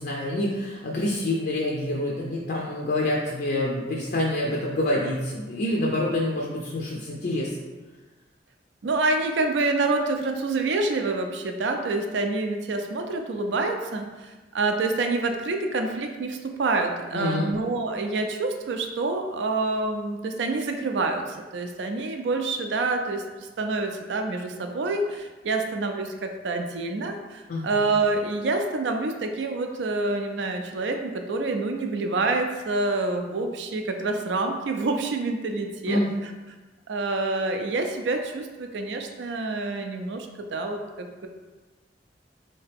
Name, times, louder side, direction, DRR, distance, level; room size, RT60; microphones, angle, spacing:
voice 1, 0.0-7.6 17.1-17.5 27.5-27.7 35.9-36.1, left 1 dB, 60° left, -2 dB, 0.4 m, -27 dB
voice 2, 8.8-36.3 36.9-41.3, right 3 dB, 70° right, 5 dB, 0.4 m, -27 dB
3.2 x 2.8 x 3.4 m, 1.2 s
head